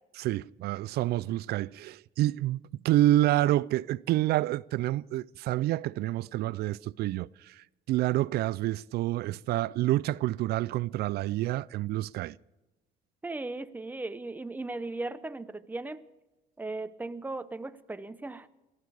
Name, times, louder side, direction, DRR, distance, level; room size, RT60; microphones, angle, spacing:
voice 1, 0.2-12.4, right 15 dB, 70° right, 0.4 m, -28 dB
voice 2, 13.2-16.0 16.6-18.5, right 2 dB, 10° right, 0.7 m, -37 dB
18.5 x 13.0 x 4.8 m
cardioid pair, 110°, 17 cm